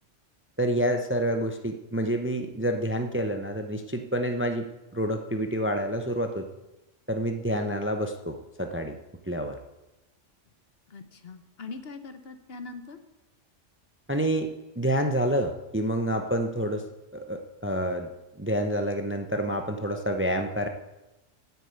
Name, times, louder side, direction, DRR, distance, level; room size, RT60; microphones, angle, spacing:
voice 1, 0.6-4.7 4.9-6.5 7.1-9.0 9.3-9.6 14.1-14.5 14.8-16.8 17.1-18.1 18.4-20.7, equal, 10° right, 6 dB, 0.7 m, -28 dB
voice 2, 10.9-13.0, left 4 dB, 55° left, 9 dB, 1.2 m, -41 dB
9.9 x 9.0 x 8.3 m, 1.0 s
omnidirectional pair, 1.3 m